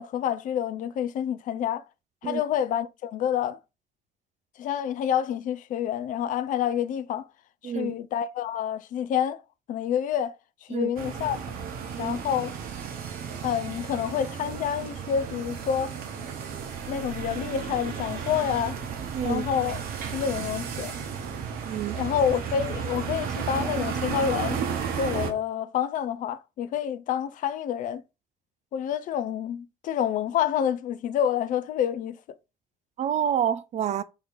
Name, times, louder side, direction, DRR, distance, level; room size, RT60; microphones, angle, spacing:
voice 1, 0.0-1.8 2.2-3.6 4.6-7.3 7.6-9.4 9.7-10.3 10.7-11.4 12.0-12.6 13.4-16.0 16.9-18.8 19.2-19.8 20.1-20.9 21.9-24.6 25.0-28.0 28.7-32.2, left 9 dB, 50° left, 0.4 m, -28 dB
voice 2, 7.6-7.9 10.7-10.9 11.9-12.2 19.1-19.4 21.6-22.0 33.0-34.0, right 9 dB, 40° right, 0.4 m, -28 dB
sound 1, 11.0-25.3, right 7 dB, 60° right, 0.9 m, -33 dB
3.8 x 2.9 x 3.8 m
figure-of-eight pair, 40°, 17 cm